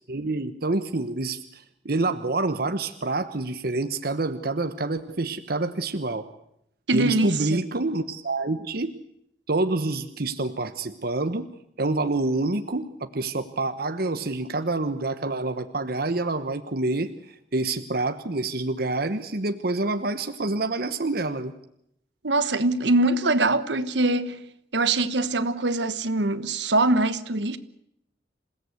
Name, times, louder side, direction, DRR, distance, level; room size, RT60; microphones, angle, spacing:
voice 1, 0.1-6.3 6.9-8.9 9.5-11.5 11.8-21.5, right 2 dB, 55° right, 1.1 m, -27 dB
voice 2, 6.9-7.6 22.2-24.4 24.7-27.6, right 2 dB, 75° right, 1.3 m, -23 dB
27.5 x 17.0 x 8.2 m
head